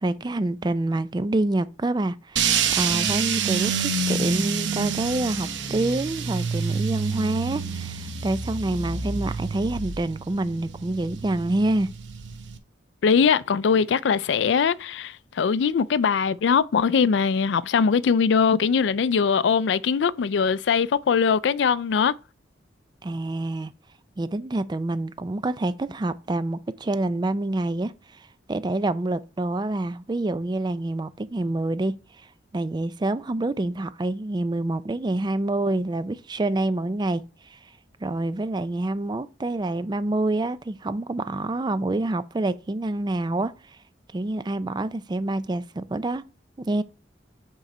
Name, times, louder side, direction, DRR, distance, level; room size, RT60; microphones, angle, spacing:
voice 1, 0.0-11.9 23.0-23.7 24.2-32.0 32.5-37.2 37.5-37.6 38.0-43.5 44.1-46.2 46.6-46.8, right 2 dB, 25° right, 0.4 m, -27 dB
sound 1, 2.4-12.6, right 6 dB, 80° right, 0.8 m, -28 dB
voice 2, 13.0-22.1, left 6 dB, 75° left, 0.4 m, -21 dB
8.0 x 3.8 x 4.3 m
head